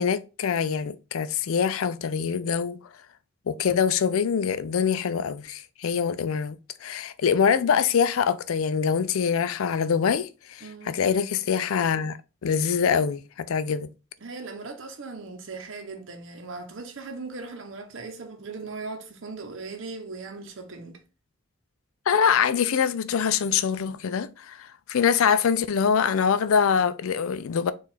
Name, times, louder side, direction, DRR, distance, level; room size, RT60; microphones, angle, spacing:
voice 1, 0.0-2.8 3.5-12.2 12.4-13.9 22.1-24.6 24.9-27.7, left 7 dB, 70° left, 0.4 m, -24 dB
voice 2, 10.6-11.0 14.2-21.0, right 3 dB, 60° right, 0.8 m, -38 dB
4.5 x 2.5 x 4.0 m
head